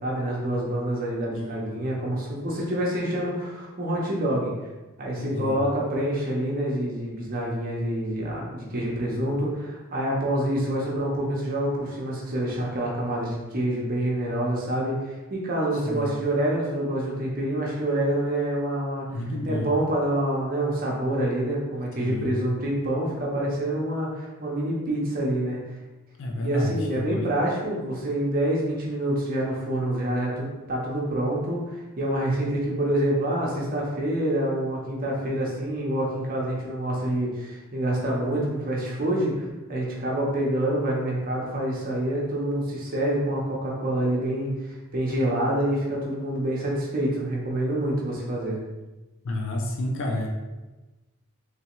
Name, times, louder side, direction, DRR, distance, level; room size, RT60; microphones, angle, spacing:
voice 1, 0.0-4.5 5.0-19.1 19.5-25.6 26.3-48.6, right 1 dB, 40° right, -3 dB, 0.7 m, -27 dB
voice 2, 1.3-1.7 5.2-5.6 15.8-16.1 19.1-19.7 22.0-22.4 26.2-27.2 49.2-50.3, left 1 dB, 60° left, 2 dB, 0.4 m, -30 dB
3.3 x 3.3 x 3.0 m, 1.1 s
head